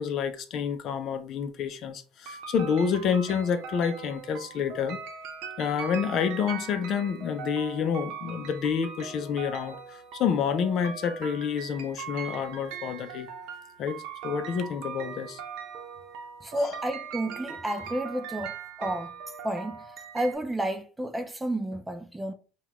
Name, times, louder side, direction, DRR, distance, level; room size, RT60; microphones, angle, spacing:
voice 1, 0.0-5.0 5.6-13.3 13.8-15.4 16.6-16.8, left 7 dB, 45° left, 0.5 m, -28 dB
sound 1, 2.3-20.3, right 6 dB, 75° right, 0.7 m, -40 dB
voice 2, 16.4-19.1 19.4-19.8 20.1-22.3, right 1 dB, 10° right, 0.4 m, -31 dB
5.7 x 2.3 x 3.0 m
cardioid pair, 145°, 0 cm